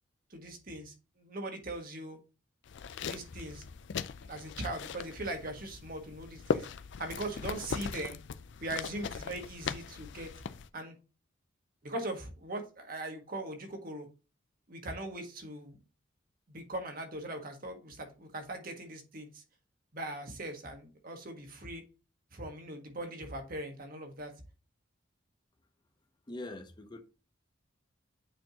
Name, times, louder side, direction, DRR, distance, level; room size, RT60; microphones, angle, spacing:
voice 1, 0.3-2.2 3.0-3.6 4.2-6.7 7.0-8.2 8.6-10.3 10.7-11.0 11.8-14.1 14.7-15.8 16.5-19.4 19.9-21.8 22.3-24.3, right 1 dB, 45° right, 1.5 m, -40 dB
sound 1, 2.7-10.7, left 6 dB, 60° left, 0.4 m, -39 dB
voice 2, 26.3-27.0, left 2 dB, 20° left, 0.8 m, -42 dB
8.7 x 4.4 x 2.9 m
head